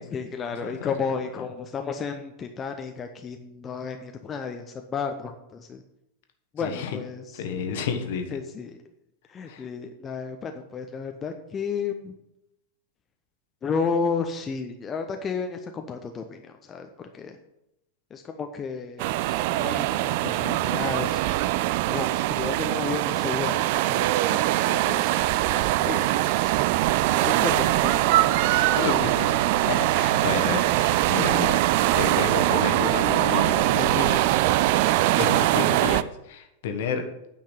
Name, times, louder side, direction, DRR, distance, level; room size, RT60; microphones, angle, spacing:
voice 1, 0.1-5.8 6.5-7.4 8.3-8.8 9.3-12.1 13.6-17.4 18.1-23.5 23.8-27.0 27.2-28.5, left 5 dB, 25° left, 5 dB, 0.8 m, -33 dB
voice 2, 6.6-7.0 7.4-8.4 9.5-9.6 28.8-37.1, left 6 dB, 55° left, 6 dB, 1.3 m, -31 dB
sound 1, 19.0-36.0, right 16 dB, 50° right, 0.4 m, -22 dB
sound 2, 27.2-35.1, right 1 dB, 80° left, 2.6 m, -40 dB
9.2 x 5.7 x 7.2 m, 0.85 s
figure-of-eight pair, 90°, 0 cm